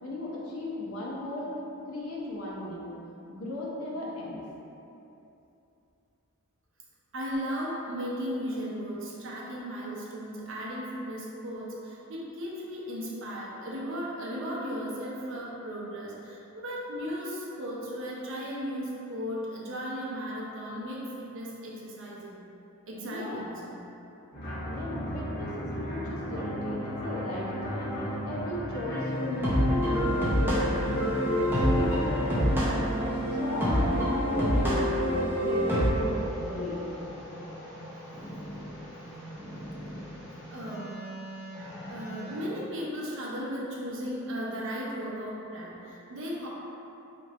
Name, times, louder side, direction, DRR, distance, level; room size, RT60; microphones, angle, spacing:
voice 1, 0.0-1.6 1.9-3.0 3.3-4.4 23.0-23.5 24.6-28.0 28.3-30.1 30.3-32.6 33.0-36.8, left 1 dB, 80° left, -5 dB, 0.7 m, -36 dB
voice 2, 7.1-22.4 22.9-23.9 40.5-40.9 41.6-46.5, equal, 60° right, -5 dB, 0.6 m, -36 dB
sound 1, 24.3-32.6, equal, 50° left, 1.2 m, -35 dB
sound 2, 29.0-35.9, equal, 10° right, 0.6 m, -26 dB
sound 3, 35.9-42.4, equal, 15° left, 1.0 m, -41 dB
2.9 x 2.5 x 4.1 m, 2.9 s
head